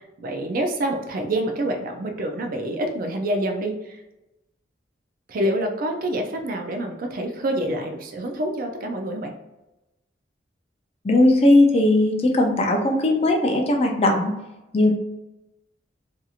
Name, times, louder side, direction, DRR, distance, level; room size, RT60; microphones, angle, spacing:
voice 1, 0.2-4.0 5.3-9.3, right 1 dB, 50° right, 4 dB, 0.4 m, -27 dB
voice 2, 11.0-14.3 14.7-14.9, left 1 dB, 35° left, 1 dB, 0.4 m, -18 dB
2.8 x 2.6 x 2.4 m, 0.97 s
head